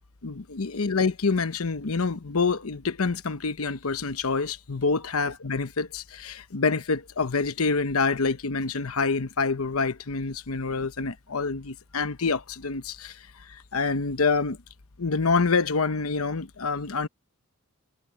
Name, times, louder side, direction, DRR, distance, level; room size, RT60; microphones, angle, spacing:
voice 1, 0.2-14.6 15.0-17.1, left 4 dB, 85° left, 0.9 m, -27 dB
head